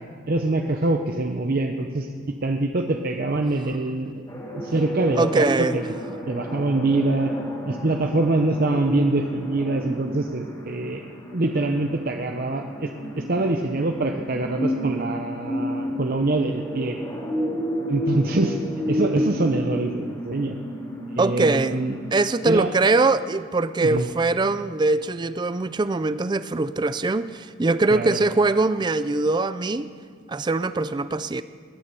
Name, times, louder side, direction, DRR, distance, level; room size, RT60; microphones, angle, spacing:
voice 1, 0.3-2.1 2.4-5.5 5.7-5.8 6.3-7.3 7.7-11.0 11.3-17.0 17.9-18.6 18.9-20.6 21.1-21.9 22.5-22.7 23.8-24.1 27.9-28.2, right 2 dB, 50° right, 4 dB, 0.7 m, -24 dB
sound 1, 4.3-22.5, equal, 20° left, 2.1 m, -31 dB
voice 2, 5.2-5.8 21.2-21.8 22.1-29.9 30.3-31.4, right 3 dB, 20° right, 14 dB, 0.4 m, -22 dB
20.0 x 9.9 x 6.9 m, 2.1 s
head